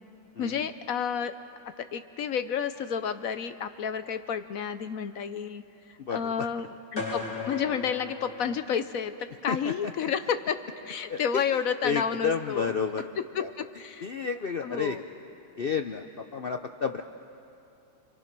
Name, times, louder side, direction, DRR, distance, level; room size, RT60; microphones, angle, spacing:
voice 1, 0.4-1.3 1.8-6.7 6.9-12.7 13.3-14.1 14.6-15.0, left 7 dB, 60° left, 10 dB, 1.0 m, -31 dB
voice 2, 6.0-6.5 9.5-9.7 10.0-10.1 11.1-11.4 11.8-13.1 13.4-13.5 14.0-15.0 15.6-17.0, left 6 dB, 80° left, 6 dB, 0.5 m, -31 dB
sound 1, 7.0-9.1, left 4 dB, 40° left, 4.1 m, -36 dB
29.5 x 23.5 x 6.0 m, 2.7 s
omnidirectional pair, 1.9 m